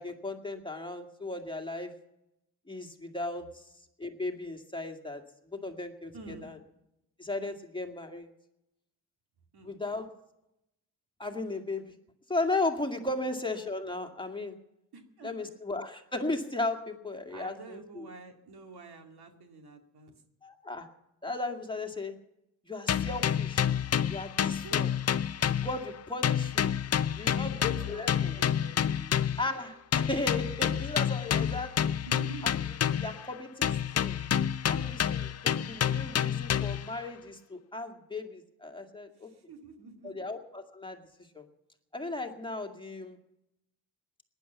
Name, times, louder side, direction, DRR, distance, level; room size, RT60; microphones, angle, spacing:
voice 1, 0.0-1.9 2.7-3.6 4.0-5.2 5.5-6.1 6.4-6.6 7.2-8.3 9.6-10.1 11.2-11.9 12.3-14.6 15.2-18.1 20.4-20.9 21.2-22.1 22.6-23.7 24.1-24.9 25.4-26.7 27.1-28.4 29.4-31.9 32.4-32.5 33.0-34.2 34.7-39.3 40.0-41.0 41.3-41.4 41.9-43.2, left 2 dB, 15° left, 3 dB, 2.1 m, -36 dB
voice 2, 6.1-6.5 9.5-9.8 13.1-13.3 14.9-15.5 17.3-20.1 24.4-24.8 27.3-29.2 32.0-32.5 39.2-40.3, right 4 dB, 80° right, 4 dB, 2.5 m, -48 dB
sound 1, 22.9-26.0 26.2-29.5 29.9-33.3 33.6-36.9, left 9 dB, 40° left, 0.5 m, -29 dB
18.5 x 10.5 x 7.1 m, 0.85 s
cardioid pair, 95°, 38 cm